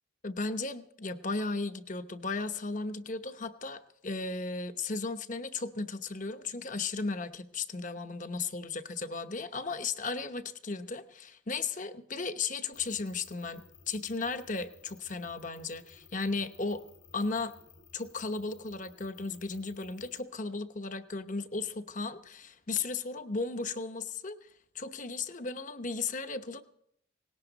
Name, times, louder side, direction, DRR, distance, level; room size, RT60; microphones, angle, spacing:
voice 1, 0.2-16.8 17.1-17.5 17.9-24.4 24.7-26.6, left 4 dB, 40° left, 9 dB, 1.0 m, -35 dB
sound 1, 12.7-20.2, left 5 dB, 75° left, 4.1 m, -58 dB
19.0 x 17.5 x 4.0 m, 0.72 s
head